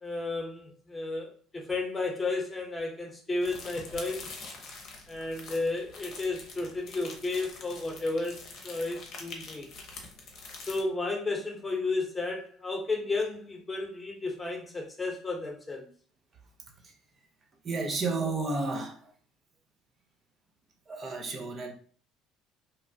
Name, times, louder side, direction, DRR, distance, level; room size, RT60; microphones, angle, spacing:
voice 1, 0.0-4.3 5.1-9.7 10.7-15.9, left 3 dB, 20° left, 0.9 m, -33 dB
sound 1, 3.4-10.8, left 3 dB, 55° left, 0.7 m, -45 dB
voice 2, 17.6-19.1 20.9-21.7, right 3 dB, 40° right, 0.6 m, -32 dB
2.9 x 2.1 x 2.6 m
hypercardioid pair, 65°, 0 cm